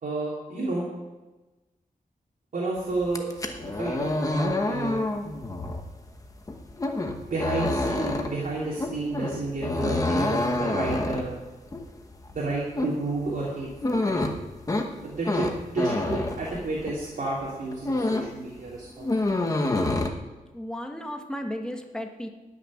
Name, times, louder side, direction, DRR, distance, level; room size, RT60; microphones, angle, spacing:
voice 1, 0.0-0.8 2.5-3.3 3.7-5.0 7.2-11.3 12.3-14.2 15.0-19.1, right 2 dB, 65° right, -6 dB, 3.1 m, -31 dB
sound 1, 3.0-17.1 17.4-18.4 18.7-20.1, left 2 dB, 25° left, 1.1 m, -28 dB
voice 2, 20.5-22.3, equal, 5° left, 3 dB, 1.3 m, -34 dB
13.5 x 6.7 x 9.8 m, 1.2 s
wide cardioid pair, 175°, 14 cm